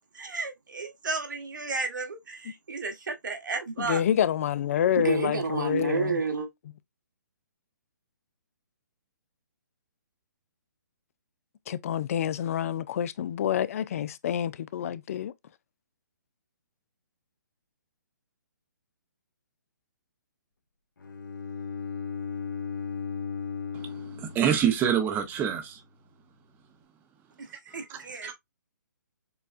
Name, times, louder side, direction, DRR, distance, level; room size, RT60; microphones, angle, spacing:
voice 1, 0.1-4.0 5.0-6.5 27.7-28.3, right 4 dB, 75° right, 1.4 m, -31 dB
voice 2, 3.8-6.2 11.7-15.3, left 10 dB, 45° left, 0.4 m, -28 dB
Bowed string instrument, 21.0-25.1, left 6 dB, 80° left, 1.0 m, -36 dB
voice 3, 24.1-25.8 27.7-28.3, right 8 dB, 20° right, 0.7 m, -27 dB
6.7 x 2.3 x 2.4 m
hypercardioid pair, 140°, 10 cm